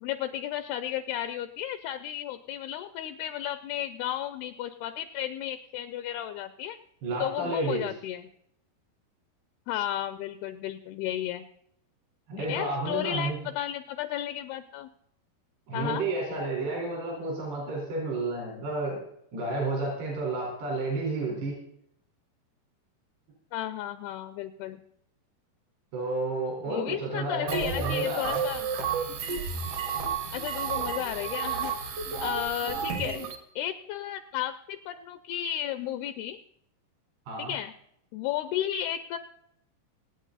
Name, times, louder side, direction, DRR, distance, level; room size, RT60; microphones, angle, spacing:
voice 1, 0.0-6.8 7.2-8.3 9.7-11.5 12.4-14.9 15.7-16.1 23.5-24.8 26.7-28.7 30.3-31.7 32.2-33.2 33.6-36.4 37.4-37.7 38.1-39.2, left 11 dB, 80° left, 11 dB, 2.5 m, -33 dB
voice 2, 7.0-7.9 12.3-13.4 15.7-19.0 19.3-21.5 25.9-28.4 37.3-37.5, right 2 dB, 75° right, -2 dB, 6.5 m, -31 dB
sound 1, 27.5-33.4, right 6 dB, 55° right, 1.8 m, -31 dB
26.5 x 9.0 x 4.1 m, 0.73 s
omnidirectional pair, 4.9 m